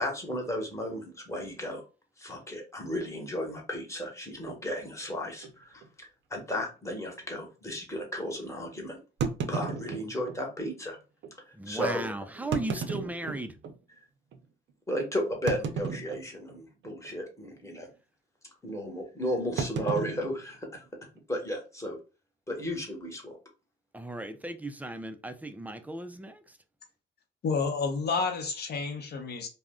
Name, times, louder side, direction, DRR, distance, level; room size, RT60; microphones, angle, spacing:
voice 1, 0.0-1.8 2.2-9.0 9.5-11.0 11.5-12.0 14.9-17.9 18.6-20.8 21.3-22.0 22.5-23.4, equal, 15° left, 1.1 m, -34 dB
sound 1, 4.5-4.6 5.4-5.5 5.8-5.9 6.5-6.6 9.2-10.4 11.2-11.3 12.4-13.8 14.3-14.4 15.5-16.6 16.8-17.2 17.4-17.8 19.6-21.2, right 5 dB, 65° right, 0.5 m, -34 dB
voice 2, 11.5-13.6 23.9-26.6, right 1 dB, 10° right, 0.4 m, -36 dB
voice 3, 27.4-29.5, left 4 dB, 55° left, 0.8 m, -30 dB
2.4 x 2.1 x 3.5 m
cardioid pair, 90°, 20 cm